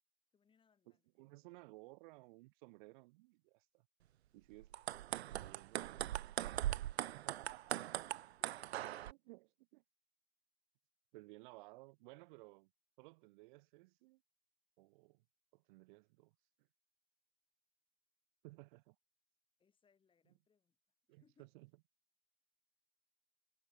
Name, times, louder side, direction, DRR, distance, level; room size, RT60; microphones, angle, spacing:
voice 1, 0.3-1.1 4.3-4.9 5.3-6.2 6.4-7.2 8.4-9.2 19.6-20.8 21.1-21.5, left 6 dB, 15° left, 4.3 m, -76 dB
voice 2, 0.9-3.9 4.3-4.8 5.1-6.1 7.1-7.9 9.1-9.8 11.1-12.7 13.0-14.2 14.8-15.2 15.5-16.3 16.6-16.7 18.4-19.0 21.1-21.7, right 24 dB, 40° right, 2.2 m, -58 dB
sound 1, 4.6-9.1, right 13 dB, 55° right, 0.5 m, -40 dB
figure-of-eight pair, 115°, 38 cm